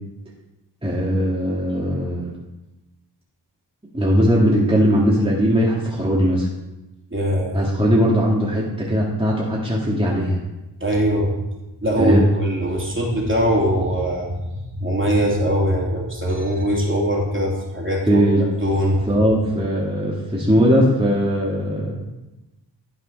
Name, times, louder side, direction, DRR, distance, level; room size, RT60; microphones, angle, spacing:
voice 1, 0.8-2.3 3.9-6.5 7.5-10.4 12.0-12.3 18.0-18.4 19.1-21.9, equal, 15° right, -5 dB, 2.2 m, -19 dB
voice 2, 7.1-7.6 10.8-11.3 11.8-14.5 14.8-18.2 18.6-19.0, equal, 30° right, -2 dB, 2.9 m, -21 dB
12.0 x 5.4 x 5.4 m, 1.0 s
wide cardioid pair, 65°, 42 cm